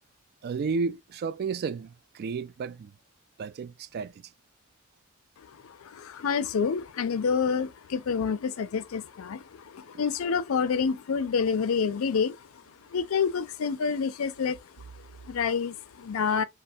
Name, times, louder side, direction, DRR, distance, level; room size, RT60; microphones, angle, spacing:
voice 1, 0.4-2.9 3.4-4.3, right 5 dB, 50° right, 0.3 m, -32 dB
voice 2, 5.4-12.6 12.9-16.4, left 6 dB, 75° left, 0.4 m, -28 dB
3.2 x 2.0 x 2.5 m
head